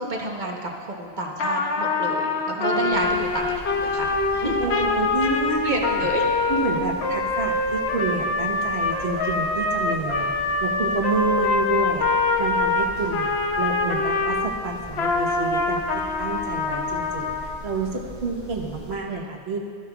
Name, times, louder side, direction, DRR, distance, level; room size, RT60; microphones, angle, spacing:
voice 1, 0.0-3.5 3.8-4.7 5.6-6.2, right 2 dB, 45° right, 0 dB, 1.1 m, -29 dB
Trumpet, 1.4-14.5 14.9-17.5, left 3 dB, 80° left, 1.0 m, -24 dB
voice 2, 2.5-2.9 4.4-6.1 6.5-10.3 10.6-12.1 12.4-13.3 13.6-19.6, right 3 dB, 75° right, 0 dB, 1.4 m, -29 dB
sound 1, 2.9-19.0, equal, 50° left, 3.3 m, -42 dB
14.5 x 13.0 x 2.3 m, 2.3 s
omnidirectional pair, 1.1 m